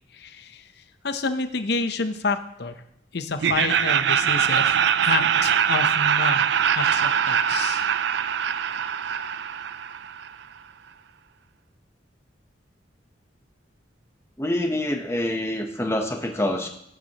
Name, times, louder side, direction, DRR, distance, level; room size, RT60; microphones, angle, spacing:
voice 1, 0.1-0.6 1.0-2.7 3.1-4.8 5.0-6.4 6.7-7.9, left 4 dB, 55° left, 9 dB, 0.7 m, -29 dB
Laughter, 3.4-10.3, right 8 dB, 60° right, 0.4 m, -22 dB
voice 2, 14.4-16.7, left 1 dB, 15° left, 4 dB, 0.9 m, -26 dB
16.5 x 9.2 x 2.9 m, 0.76 s
head